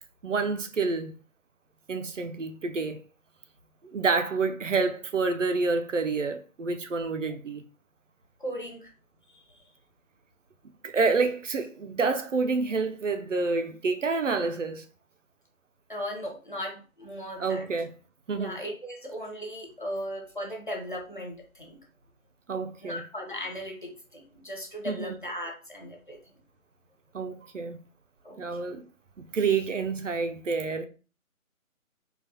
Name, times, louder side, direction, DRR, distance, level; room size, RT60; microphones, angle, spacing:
voice 1, 0.2-1.1 1.9-3.0 3.8-7.6 10.8-14.8 17.4-17.9 18.3-18.6 22.5-23.1 24.8-25.1 27.1-27.8 28.4-28.8 29.2-30.9, right 4 dB, 60° right, 0.5 m, -28 dB
voice 2, 8.4-8.9 9.3-9.6 15.9-17.6 18.3-21.8 22.8-26.2 28.2-28.6, equal, 35° left, 0.6 m, -37 dB
3.9 x 2.3 x 2.8 m
figure-of-eight pair, 160°, 43 cm